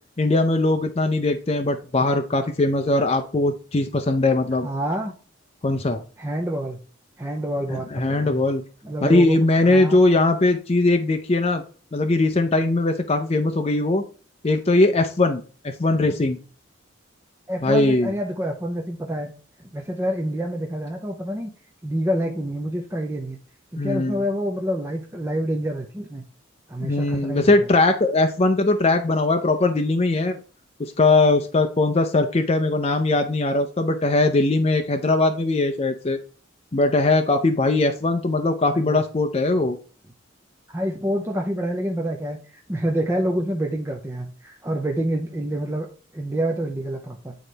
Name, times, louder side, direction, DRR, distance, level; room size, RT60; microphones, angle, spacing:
voice 1, 0.2-4.7 5.6-6.0 7.7-8.6 9.0-11.6 11.9-14.0 14.4-16.4 17.6-18.1 23.8-24.2 26.8-30.4 30.8-36.2 36.7-39.8, left 2 dB, 30° left, 6 dB, 0.5 m, -20 dB
voice 2, 4.6-5.1 6.2-6.8 7.2-8.3 8.8-9.4 9.6-10.0 17.5-19.3 19.7-21.5 21.8-23.4 23.7-26.2 26.7-27.7 38.7-39.0 40.7-45.9 46.1-47.4, right 1 dB, 15° right, 1 dB, 0.6 m, -27 dB
9.2 x 3.9 x 3.3 m, 0.38 s
head